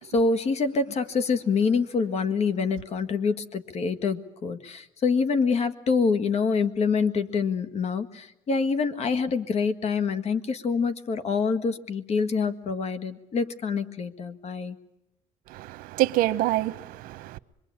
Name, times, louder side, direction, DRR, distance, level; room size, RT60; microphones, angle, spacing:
voice 1, 0.1-14.8, left 5 dB, 50° left, 1.8 m, -26 dB
voice 2, 15.5-17.4, right 15 dB, 85° right, 0.9 m, -26 dB
26.0 x 23.0 x 8.8 m
cardioid pair, 120°, 14 cm